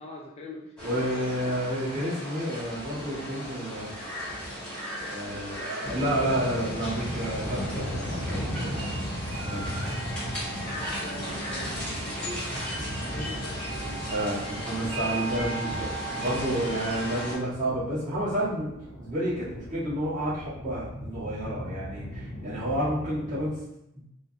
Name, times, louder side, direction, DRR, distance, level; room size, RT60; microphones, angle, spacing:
voice 1, 0.0-1.5 10.7-11.8 12.0-12.8 13.1-14.2, left 2 dB, 30° left, -2 dB, 0.3 m, -43 dB
sound 1, 0.8-17.3, right 1 dB, 5° left, 1.0 m, -35 dB
voice 2, 0.8-3.9 5.1-8.7 9.5-9.7 14.1-23.6, right 1 dB, 35° right, -10 dB, 1.5 m, -30 dB
sound 2, 5.8-23.5, equal, 65° left, 0.7 m, -38 dB
Laughter, 9.3-10.0 10.8-13.9 14.3-14.4, right 2 dB, 60° right, 0.6 m, -44 dB
3.8 x 2.1 x 2.7 m, 0.84 s
head